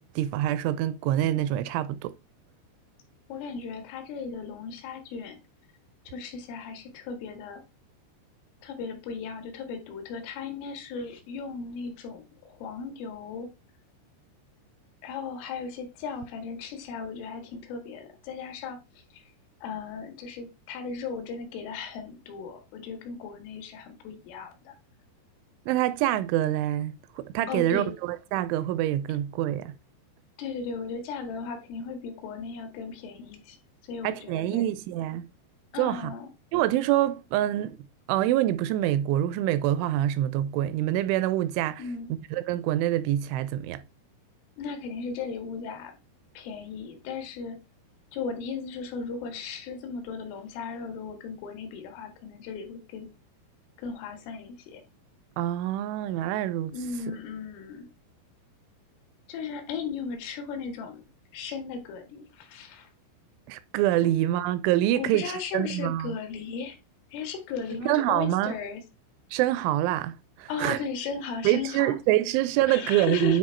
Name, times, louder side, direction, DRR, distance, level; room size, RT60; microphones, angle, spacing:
voice 1, 0.0-2.1 25.7-29.8 34.0-35.3 35.8-36.1 36.5-37.8 38.1-41.8 42.3-43.8 55.4-56.7 63.5-65.2 65.5-66.2 67.9-68.6 69.3-70.8 71.4-73.4, right 13 dB, 85° right, 2.9 m, -26 dB
voice 2, 3.3-5.4 6.1-7.6 8.6-13.5 15.0-18.8 19.1-19.2 19.6-24.8 27.5-27.9 30.4-33.6 33.9-34.7 35.7-36.3 41.8-42.1 44.6-46.0 46.4-47.6 48.1-53.1 53.8-54.8 56.7-57.9 59.3-61.0 61.3-62.9 65.0-66.8 67.1-68.8 70.5-72.0 72.7-73.4, left 5 dB, 85° left, 4.1 m, -36 dB
9.6 x 3.4 x 4.4 m
omnidirectional pair, 5.6 m